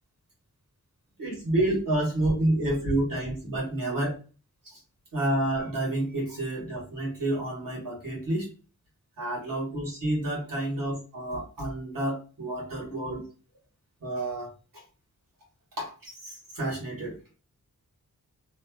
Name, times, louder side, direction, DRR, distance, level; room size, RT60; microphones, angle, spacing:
voice 1, 1.2-4.2 4.6-4.8 5.1-8.5 9.2-13.2 14.0-14.8 15.8-17.2, right 1 dB, 75° right, -3 dB, 1.7 m, -29 dB
3.2 x 2.8 x 2.3 m, 0.36 s
wide cardioid pair, 80°, 33 cm